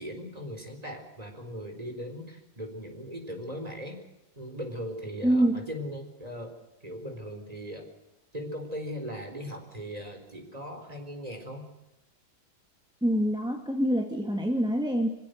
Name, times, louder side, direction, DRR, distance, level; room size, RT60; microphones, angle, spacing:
voice 1, 0.0-4.0 4.4-6.5 6.8-7.9 8.3-11.7, equal, 20° right, 5 dB, 4.3 m, -39 dB
voice 2, 5.2-5.6 13.0-15.1, right 1 dB, ahead, 3 dB, 2.0 m, -25 dB
26.5 x 16.0 x 8.0 m, 0.98 s
omnidirectional pair, 2.0 m